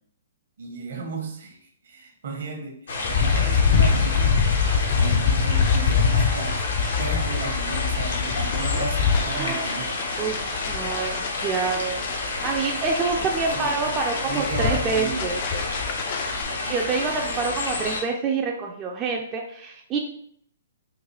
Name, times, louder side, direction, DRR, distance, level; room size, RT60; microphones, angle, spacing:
voice 1, 0.6-4.4 4.9-6.6 7.0-9.9 13.5-14.0 14.2-15.3 16.5-16.9, right 4 dB, 65° right, 2 dB, 0.9 m, -34 dB
sound 1, 2.9-18.0, left 3 dB, 75° left, 0.8 m, -30 dB
sound 2, 3.0-16.4, left 6 dB, 45° left, 0.4 m, -24 dB
voice 2, 9.3-9.8 10.2-15.4 16.6-20.0, right 4 dB, 25° right, 1 dB, 0.4 m, -27 dB
3.8 x 2.4 x 3.0 m, 0.66 s
hypercardioid pair, 135°, 0 cm